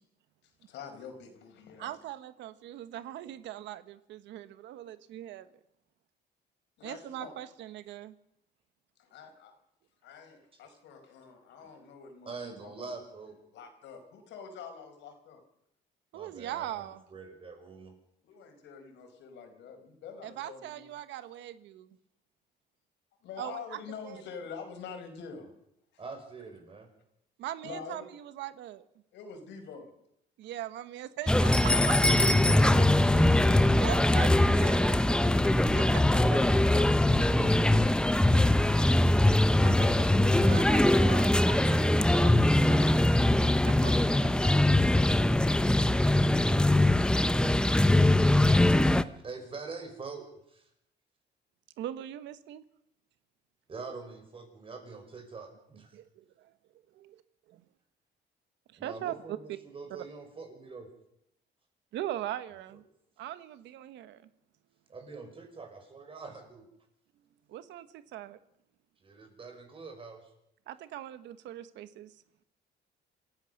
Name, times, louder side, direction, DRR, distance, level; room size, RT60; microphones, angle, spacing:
voice 1, 0.7-2.0 6.8-7.3 9.0-9.5 10.0-12.9 13.5-15.4 18.2-20.9 23.2-25.5 27.6-28.1 29.1-29.9 32.5-33.9 36.2-38.0, left 6 dB, 85° left, 5 dB, 5.0 m, -45 dB
voice 2, 1.8-5.5 6.8-8.2 16.1-17.0 20.2-21.9 23.4-23.8 24.0-24.2 27.4-28.8 30.4-32.4 33.8-36.0 39.6-40.2 40.5-41.2 41.5-44.4 51.8-52.6 55.9-56.5 57.0-57.1 57.5-57.6 58.8-59.4 61.9-62.8 63.2-64.2 67.5-68.4 70.7-72.1, right 12 dB, 90° right, 13 dB, 1.3 m, -41 dB
voice 3, 12.3-13.4 16.1-17.9 26.0-26.9 32.9-33.8 40.0-41.3 48.7-50.7 53.7-56.0 58.8-60.9 62.7-62.8 64.9-66.6 69.0-70.3, right 4 dB, 30° right, 5 dB, 5.6 m, -44 dB
sound 1, 31.3-49.0, left 1 dB, 5° left, 0.7 m, -22 dB
27.0 x 15.5 x 6.5 m, 0.78 s
cardioid pair, 135°, 18 cm